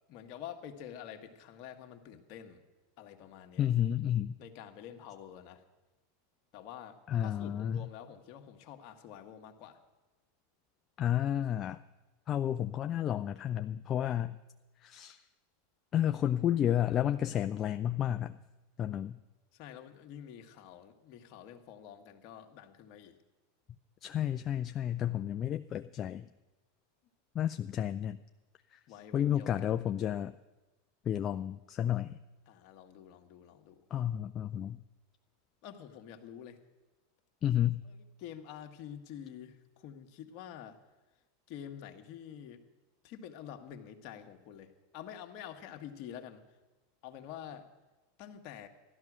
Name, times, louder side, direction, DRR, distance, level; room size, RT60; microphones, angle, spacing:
voice 1, 0.1-2.6 3.0-3.7 4.4-5.6 6.5-9.8 19.5-23.2 28.9-29.7 32.5-33.8 35.6-36.6 37.8-40.8 41.5-42.6 43.0-46.4 47.0-47.7 48.2-48.7, left 9 dB, 55° left, 4 dB, 1.6 m, -48 dB
voice 2, 3.6-4.4 7.1-7.9 11.0-11.8 12.3-14.4 14.8-15.2 15.9-18.4 18.8-19.2 24.0-26.3 27.3-28.2 28.7-28.8 29.1-30.3 31.1-32.2 33.9-34.8 37.4-37.8, left 10 dB, 35° left, 7 dB, 0.4 m, -31 dB
14.0 x 12.0 x 6.2 m, 1.1 s
hypercardioid pair, 100°, 0 cm